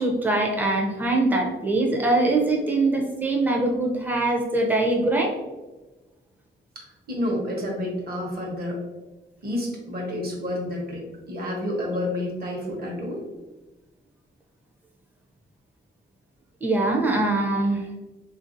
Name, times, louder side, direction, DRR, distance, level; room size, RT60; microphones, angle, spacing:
voice 1, 0.0-5.3 16.6-17.8, right 2 dB, 10° right, 0 dB, 0.5 m, -23 dB
voice 2, 6.7-8.8 9.4-13.2, left 1 dB, 50° right, -1 dB, 0.9 m, -29 dB
3.4 x 2.5 x 2.5 m, 1.1 s
wide cardioid pair, 125°, 20 cm